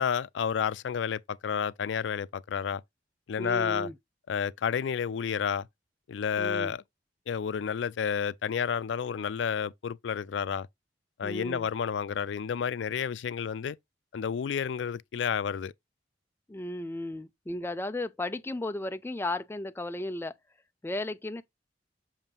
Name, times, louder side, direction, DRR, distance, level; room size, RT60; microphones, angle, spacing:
voice 1, 0.0-2.8 3.3-3.9 4.3-5.7 6.1-6.8 7.3-10.7 11.2-13.8 14.1-15.7, left 7 dB, 80° left, 0.4 m, -30 dB
voice 2, 3.4-4.0 6.4-6.7 11.2-11.7 16.5-20.3 20.8-21.4, left 1 dB, 15° left, 0.4 m, -34 dB
7.2 x 2.7 x 5.3 m
head